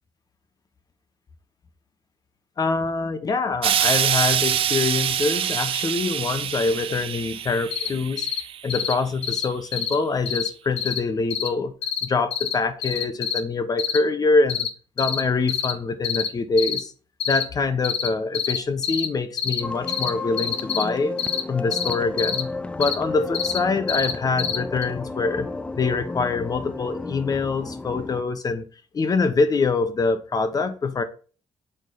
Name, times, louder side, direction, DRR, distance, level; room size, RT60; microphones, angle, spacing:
voice 1, 2.6-8.3 8.6-11.7 12.0-14.7 15.0-16.9 17.3-21.2 21.5-22.5 22.8-25.5 25.8-28.7 28.9-31.0, left 4 dB, 35° left, 9 dB, 0.9 m, -24 dB
Explosion, 3.6-8.9 9.8-9.9, right 10 dB, 60° right, 0.4 m, -25 dB
sound 1, 7.7-7.9 8.2-8.4 8.7-8.9 9.2-9.5 9.7-9.9 10.3-10.5 10.8-11.0 11.3-11.5 11.8-12.0 12.3-12.5 12.8-13.4 13.8-14.0 14.5-14.7 15.0-15.2 15.5-15.7 16.0-16.3 16.6-16.8 17.2-17.4 17.8-18.1 18.3-18.6 18.8-19.1 19.4-19.6 19.9-20.1 20.4-20.8 21.2-21.4 21.7-22.4 22.8-22.9 23.3-23.6 23.9-24.1 24.4-24.6 24.8-24.9, left 8 dB, 70° left, 0.9 m, -26 dB
sound 2, 19.6-28.2, left 3 dB, 10° left, 0.4 m, -33 dB
6.5 x 3.9 x 3.9 m, 0.38 s
cardioid pair, 105°, 11 cm